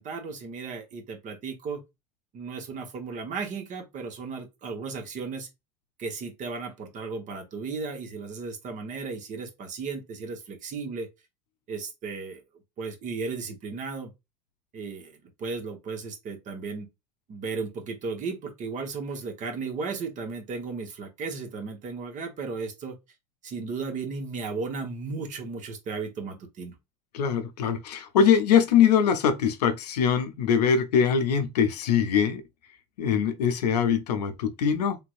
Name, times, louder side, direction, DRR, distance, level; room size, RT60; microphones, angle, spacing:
voice 1, 0.0-1.8 2.3-5.5 6.0-11.1 11.7-12.4 12.8-14.1 14.7-16.9 17.3-23.0 23.4-26.7, right 4 dB, 35° right, 1.1 m, -35 dB
voice 2, 27.1-32.4 33.0-35.0, left 7 dB, 70° left, 0.6 m, -22 dB
3.4 x 2.9 x 2.5 m
figure-of-eight pair, 80°, 21 cm